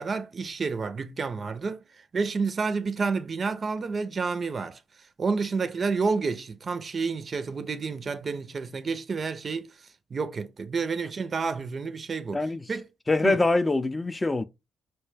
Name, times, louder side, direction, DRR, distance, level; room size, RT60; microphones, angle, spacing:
voice 1, 0.0-12.9 13.2-13.4, right 4 dB, 45° right, 0.4 m, -30 dB
voice 2, 12.3-12.6 13.1-14.5, left 2 dB, 25° left, 0.4 m, -24 dB
4.3 x 2.2 x 3.2 m
hypercardioid pair, 50°, 0 cm